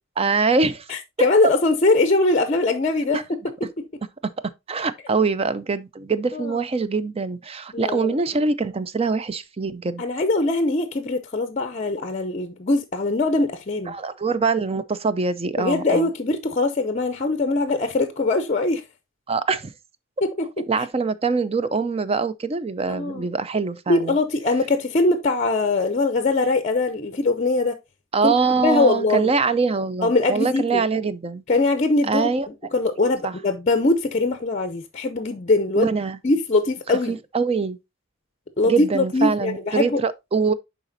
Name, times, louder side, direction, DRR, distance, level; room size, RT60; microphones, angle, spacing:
voice 1, 0.2-0.9 3.1-3.2 4.2-4.3 4.7-10.0 13.9-16.1 19.3-19.7 20.7-24.2 28.1-31.4 32.0-32.5 33.2-33.3 35.8-36.2 37.1-37.8 38.6-40.5, right 4 dB, 25° right, 0.4 m, -23 dB
voice 2, 0.9-3.4 6.3-6.6 7.7-8.2 10.0-13.9 15.6-18.8 20.2-20.7 22.9-23.3 23.9-27.8 28.2-28.3 28.6-29.3 30.0-30.8 31.5-32.3 32.7-35.9 36.2-37.2 38.6-40.0, left 2 dB, 35° left, 0.5 m, -22 dB
10.5 x 4.0 x 2.6 m
head